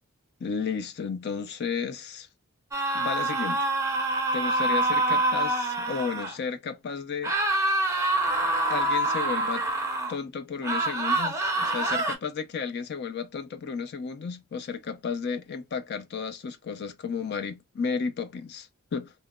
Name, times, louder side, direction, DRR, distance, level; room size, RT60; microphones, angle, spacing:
voice 1, 0.4-2.3 2.9-3.7 4.3-7.3 8.7-9.6 10.1-19.1, left 5 dB, 50° left, 0.4 m, -33 dB
sound 1, 2.7-6.3 7.2-10.2 10.6-12.1, right 2 dB, 15° right, 0.4 m, -26 dB
2.7 x 2.1 x 2.2 m
head